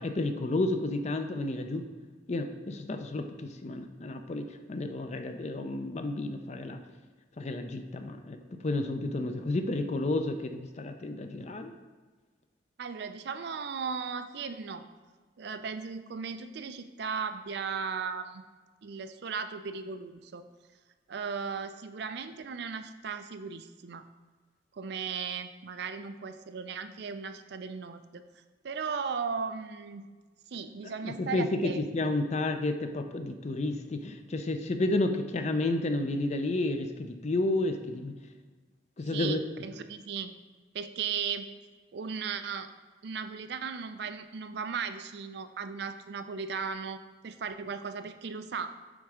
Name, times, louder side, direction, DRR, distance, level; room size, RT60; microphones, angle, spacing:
voice 1, 0.0-1.9 2.3-6.8 7.4-11.7 31.0-38.2 39.0-39.4, left 2 dB, 40° left, 7 dB, 0.5 m, -31 dB
voice 2, 12.8-14.9 15.4-18.4 18.8-20.4 21.1-24.0 24.7-28.2 28.6-30.1 30.5-31.8 39.1-40.3 40.7-41.5 41.9-42.7 43.0-48.8, right 6 dB, 65° right, 10 dB, 0.4 m, -36 dB
7.2 x 3.6 x 4.9 m, 1.4 s
head